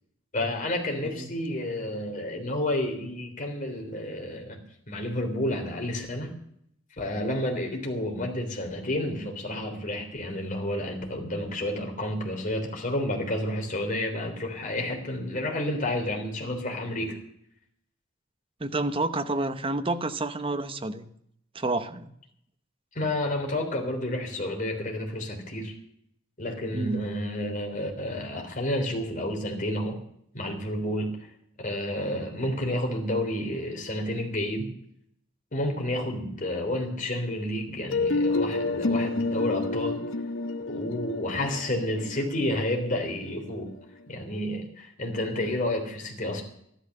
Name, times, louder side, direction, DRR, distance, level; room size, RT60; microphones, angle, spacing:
voice 1, 0.3-4.6 4.9-6.3 7.0-17.2 22.9-25.7 26.4-30.0 30.3-31.2 31.6-34.7 35.5-40.0 40.7-43.7 44.1-46.4, left 1 dB, 45° left, 2 dB, 3.4 m, -30 dB
voice 2, 18.6-21.1 21.5-22.1 26.7-27.0, right 2 dB, 30° right, 10 dB, 0.9 m, -29 dB
sound 1, 37.9-43.7, left 3 dB, 90° left, 0.9 m, -29 dB
13.0 x 12.0 x 6.6 m, 0.71 s
head